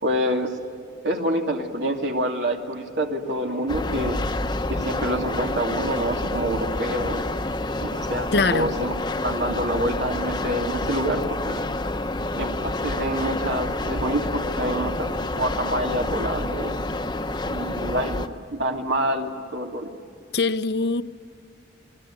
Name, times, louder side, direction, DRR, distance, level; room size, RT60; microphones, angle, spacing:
voice 1, 0.0-0.5 1.0-4.2 4.7-7.3 7.8-8.9 9.2-11.6 12.3-16.7 17.4-19.9, right 1 dB, 80° right, 2.8 m, -27 dB
sound 1, 3.7-18.3, left 2 dB, 25° left, 0.9 m, -28 dB
voice 2, 8.3-8.7 20.3-21.0, left 3 dB, 65° left, 0.8 m, -22 dB
28.5 x 21.0 x 9.2 m
head